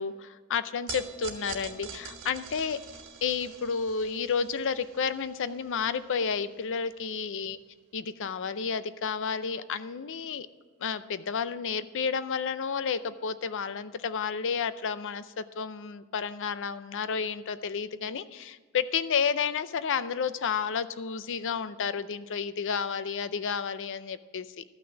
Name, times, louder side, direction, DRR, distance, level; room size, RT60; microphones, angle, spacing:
voice 1, 0.0-2.8 3.2-7.6 7.9-10.5 10.8-24.6, left 6 dB, 60° left, 14 dB, 0.5 m, -31 dB
sound 1, 0.9-7.3, right 6 dB, 55° right, 1.5 m, -45 dB
13.0 x 6.0 x 7.1 m, 1.4 s
head